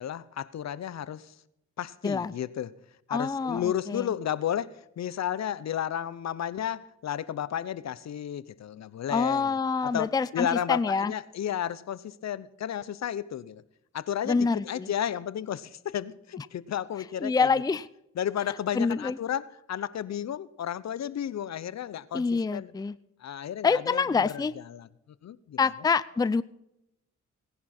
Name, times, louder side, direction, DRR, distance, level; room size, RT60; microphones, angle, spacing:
voice 1, 0.0-1.3 1.8-2.7 3.1-9.6 9.8-13.6 13.9-17.5 18.2-22.7 23.2-24.4 24.7-24.9 25.2-25.6, left 10 dB, 60° left, 18 dB, 0.8 m, -33 dB
voice 2, 3.1-4.1 9.1-11.1 14.3-14.9 17.2-17.9 18.7-19.2 22.1-23.0 23.6-24.5 25.6-26.4, left 5 dB, 15° left, 16 dB, 0.5 m, -26 dB
18.0 x 11.0 x 4.3 m, 0.84 s
cardioid pair, 90°, 30 cm